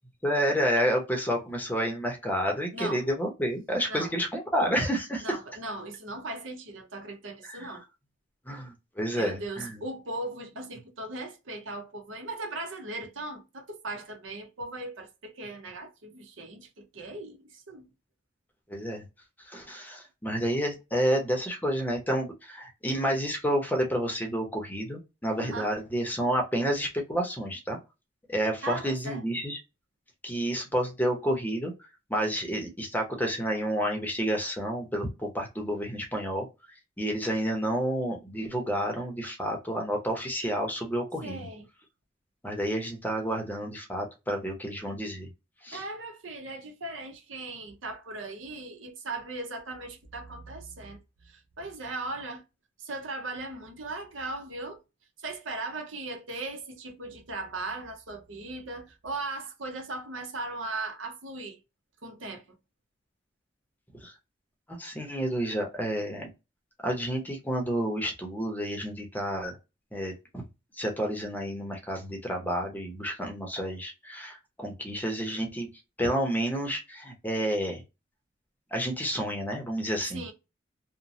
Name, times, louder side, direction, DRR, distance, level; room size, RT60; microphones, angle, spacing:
voice 1, 0.2-5.4 7.4-7.7 8.5-9.7 18.7-19.1 19.5-27.8 28.3-29.6 30.2-31.7 32.1-36.5 37.0-41.5 42.4-45.3 45.6-45.8 64.0-64.1 64.7-66.3 66.8-69.6 69.9-70.4 70.8-75.7 76.0-77.8 78.7-80.2, equal, 10° left, 0.7 m, -30 dB
voice 2, 2.7-3.0 3.9-4.1 5.2-7.8 9.1-17.9 25.4-25.7 28.6-29.2 41.2-41.7 45.7-51.0 51.2-52.4 52.8-54.8 55.2-61.6 62.0-62.4 80.1-80.3, right 2 dB, 80° right, 0.9 m, -38 dB
3.0 x 2.1 x 2.6 m
head